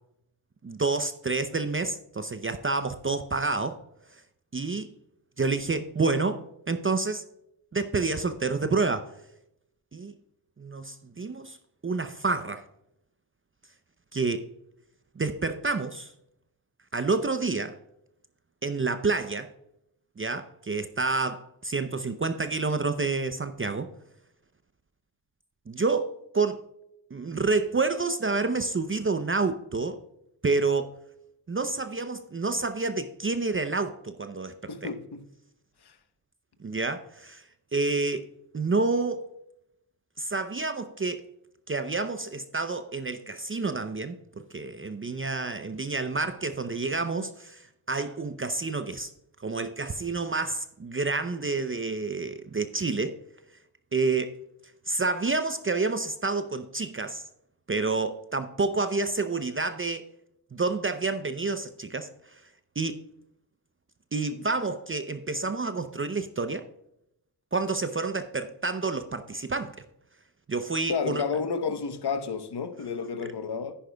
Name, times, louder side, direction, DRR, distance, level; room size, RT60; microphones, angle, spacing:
voice 1, 0.6-3.8 4.1-4.2 4.5-4.9 5.4-7.3 7.7-9.1 9.9-10.1 10.6-11.6 11.8-12.7 14.1-14.5 15.2-16.1 16.9-17.8 18.6-19.5 20.2-23.9 25.7-26.6 27.1-30.0 30.4-30.9 31.5-34.5 36.6-37.4 37.7-38.3 38.5-39.2 40.2-41.2 41.7-44.2 44.5-49.1 49.4-53.2 53.9-54.3 54.9-57.2 57.7-60.1 60.5-62.4 62.8-63.0 64.1-66.6 67.5-69.8 70.5-71.2 73.2-73.3, right 3 dB, 25° right, 0.6 m, -29 dB
voice 2, 34.7-35.2 35.8-36.0 70.9-73.7, left 5 dB, 55° left, 1.1 m, -31 dB
10.0 x 9.8 x 2.3 m
cardioid pair, 45°, 47 cm